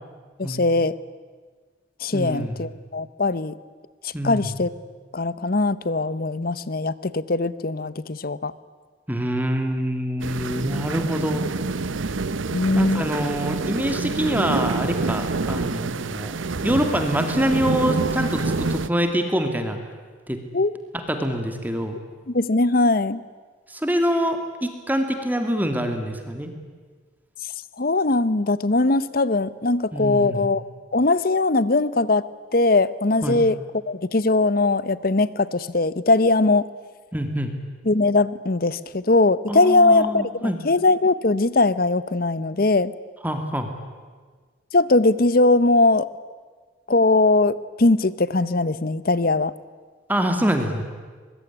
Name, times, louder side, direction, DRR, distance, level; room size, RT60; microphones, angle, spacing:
voice 1, 0.4-0.9 2.0-3.5 4.0-4.7 5.1-8.5 12.5-13.1 20.5-20.7 22.3-23.2 27.8-30.6 30.9-33.6 33.9-36.7 37.9-42.9 44.7-46.1 46.9-49.5, left 2 dB, 50° left, 17 dB, 0.8 m, -20 dB
voice 2, 2.1-2.7 4.1-4.5 9.1-11.5 12.8-19.8 20.3-20.4 20.9-22.0 23.7-26.5 29.9-30.5 33.2-33.4 37.1-37.5 39.5-40.6 43.2-43.7 50.1-50.8, equal, 10° right, 6 dB, 2.2 m, -25 dB
sound 1, 10.2-18.9, right 3 dB, 80° right, 0.8 m, -27 dB
24.0 x 21.5 x 10.0 m, 1.5 s
head